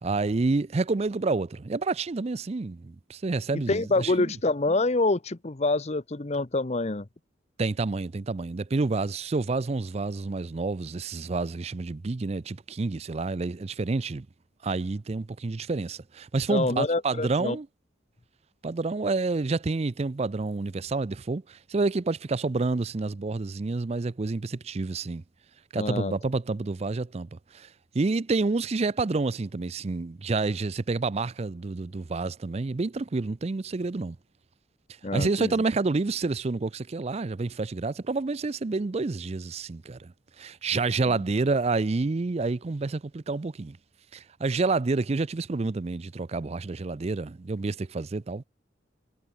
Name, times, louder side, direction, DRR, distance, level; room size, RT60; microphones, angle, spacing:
voice 1, 0.0-4.3 7.6-14.3 14.6-17.7 18.6-25.2 25.7-34.2 35.1-43.8 44.1-48.4, right 3 dB, 35° right, 0.5 m, -29 dB
voice 2, 3.7-7.1 16.5-17.6 25.7-26.1 35.0-35.5, left 2 dB, 35° left, 0.9 m, -26 dB
head